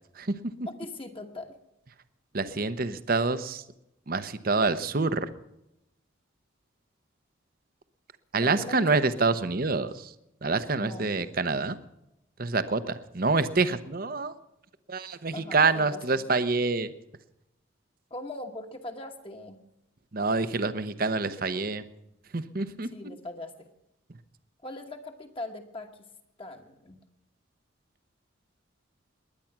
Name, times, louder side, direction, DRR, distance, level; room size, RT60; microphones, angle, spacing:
voice 1, 0.7-1.6 8.4-8.9 10.7-11.1 15.3-16.3 18.1-19.6 22.9-23.7 24.6-26.0 26.4-27.0, left 2 dB, 25° left, 4 dB, 1.2 m, -40 dB
voice 2, 2.3-3.6 4.1-5.3 8.3-10.1 10.4-11.8 12.4-14.3 14.9-16.9 20.1-21.8 22.3-22.9, right 3 dB, 45° right, 12 dB, 0.8 m, -27 dB
21.0 x 9.9 x 6.0 m, 0.87 s
head